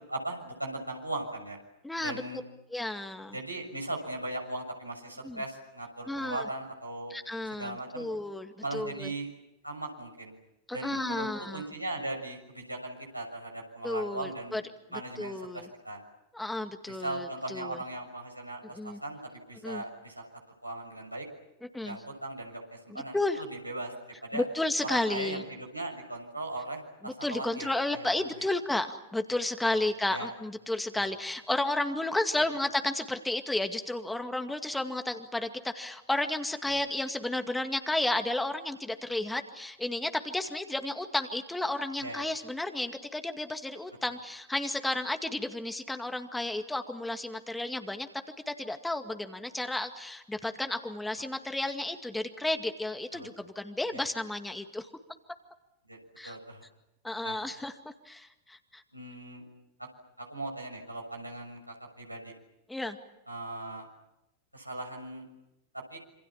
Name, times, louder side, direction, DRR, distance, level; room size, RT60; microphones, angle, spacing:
voice 1, 0.1-1.6 2.0-2.4 3.3-7.1 7.6-8.1 8.6-9.3 9.6-10.4 10.7-11.3 11.5-14.6 14.9-16.0 16.9-20.3 20.6-21.2 21.8-23.9 24.2-24.4 24.8-28.5 29.7-29.8 30.1-30.3 36.7-36.8 42.0-42.3 53.1-53.3 53.9-54.0 55.9-56.0 56.2-56.6 57.2-57.4 58.9-59.4 60.2-62.3 63.3-63.8 64.5-65.3 65.9-66.0, right 2 dB, 85° right, 1 dB, 6.7 m, -38 dB
voice 2, 1.8-2.2 2.7-3.4 5.2-5.4 6.1-6.5 7.1-9.1 10.7-11.7 13.8-14.6 15.2-15.7 16.3-17.8 18.7-19.0 19.6-19.8 21.7-22.0 22.9-23.4 24.3-25.4 27.0-48.1 48.5-54.9 56.2-56.4 57.0-57.7 58.1-58.8 62.7-63.0, left 2 dB, 5° left, 7 dB, 2.1 m, -32 dB
27.5 x 27.5 x 7.3 m, 0.89 s
figure-of-eight pair, 90°, 0 cm